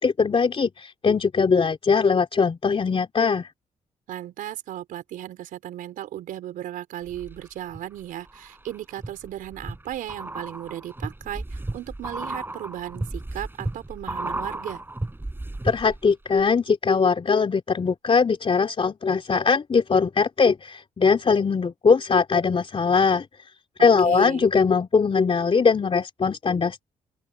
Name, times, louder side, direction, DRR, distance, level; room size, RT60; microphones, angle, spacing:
voice 1, 0.0-3.5 15.6-23.5 23.8-26.8, left 5 dB, 40° left, 3.1 m, -21 dB
voice 2, 4.1-14.8 23.8-24.4, right 12 dB, 80° right, 5.4 m, -36 dB
sound 1, 7.1-7.8 8.3-16.1 16.4-16.5, right 2 dB, 15° right, 5.2 m, -34 dB
open air
supercardioid pair, 60°, 14 cm